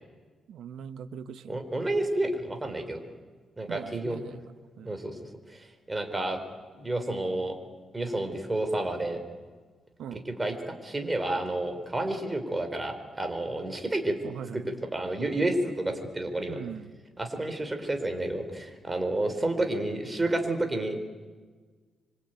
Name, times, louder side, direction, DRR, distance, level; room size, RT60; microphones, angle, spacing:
voice 1, 0.5-1.6 3.7-4.5 4.8-4.9 10.0-10.2 14.2-14.8 16.5-16.9, right 8 dB, 80° right, 11 dB, 1.4 m, -40 dB
voice 2, 1.5-3.0 3.6-4.2 4.8-5.2 5.9-6.4 6.8-7.5 7.9-9.2 10.1-14.2 14.5-16.6 17.2-21.0, right 1 dB, 15° right, 6 dB, 4.4 m, -30 dB
26.0 x 24.5 x 9.3 m, 1.4 s
cardioid pair, 100°, 0 cm